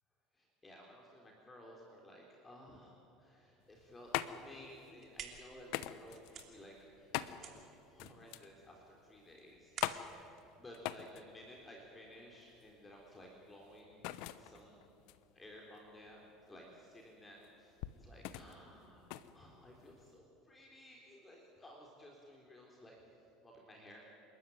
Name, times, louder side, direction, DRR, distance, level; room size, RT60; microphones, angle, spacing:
voice 1, 0.3-7.1 7.4-10.1 10.6-14.9 15.3-24.0, equal, 20° left, 0 dB, 3.6 m, -56 dB
sound 1, 3.6-20.2, left 14 dB, 70° left, 0.9 m, -45 dB
sound 2, 4.7-11.6, right 7 dB, 45° right, 3.1 m, -54 dB
28.0 x 13.0 x 9.4 m, 2.9 s
supercardioid pair, 105°, 0 cm